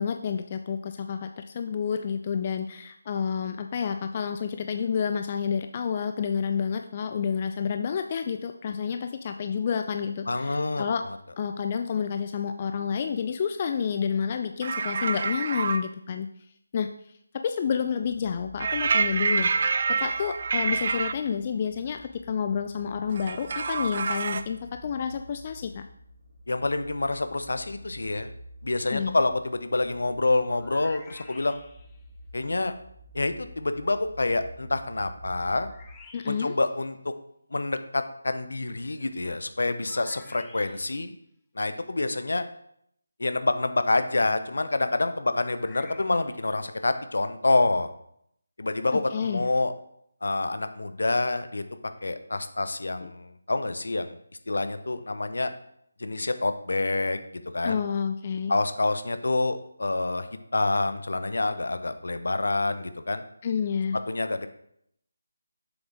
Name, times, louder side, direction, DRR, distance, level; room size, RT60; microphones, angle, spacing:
voice 1, 0.0-11.0 11.4-16.3 16.7-16.9 17.3-25.8 28.9-29.2 36.1-36.5 48.9-49.5 53.0-53.1 57.6-58.6 63.4-64.0, left 6 dB, 30° left, 7 dB, 0.4 m, -29 dB
voice 2, 10.3-11.2 26.5-28.3 28.6-31.6 32.3-32.7 33.1-35.7 36.3-37.1 37.5-41.1 41.5-42.4 43.2-47.9 48.6-49.7 50.2-51.6 52.0-54.2 54.5-55.5 56.0-57.2 57.5-57.8 58.5-60.3 60.5-63.2 64.1-64.5, left 2 dB, 65° left, 10 dB, 0.8 m, -27 dB
sound 1, 14.6-15.8 18.6-21.1 23.1-24.4, right 4 dB, 40° right, 0.4 m, -27 dB
sound 2, 18.0-36.0, equal, 70° right, 3.5 m, -49 dB
sound 3, 30.4-32.0 35.6-36.7 39.8-41.1 45.2-46.5, left 3 dB, 10° left, 0.7 m, -51 dB
7.2 x 7.0 x 3.5 m, 0.72 s
figure-of-eight pair, 160°, 0 cm